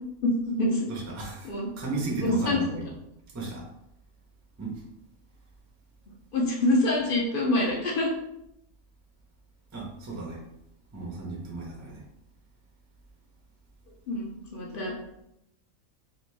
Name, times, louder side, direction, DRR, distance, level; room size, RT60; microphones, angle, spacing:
voice 1, 0.2-0.9 1.4-1.7 2.2-2.6 6.3-8.1 14.1-14.9, left 1 dB, 65° left, -2 dB, 0.5 m, -25 dB
voice 2, 0.9-2.9 3.3-3.7 4.6-4.8 9.7-10.4 10.9-12.0, right 3 dB, 20° right, -3 dB, 0.4 m, -35 dB
2.9 x 2.5 x 3.2 m, 0.81 s
omnidirectional pair, 1.5 m